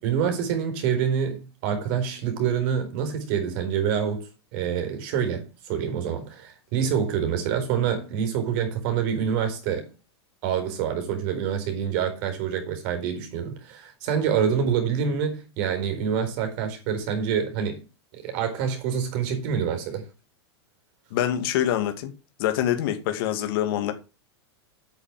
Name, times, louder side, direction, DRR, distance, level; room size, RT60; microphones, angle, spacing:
voice 1, 0.0-9.9 10.4-17.8 18.1-20.0, right 7 dB, 50° right, 4.1 m, -26 dB
voice 2, 21.1-22.1 22.4-23.9, left 11 dB, 55° left, 2.4 m, -25 dB
8.5 x 6.8 x 7.4 m
supercardioid pair, 145°, 14 cm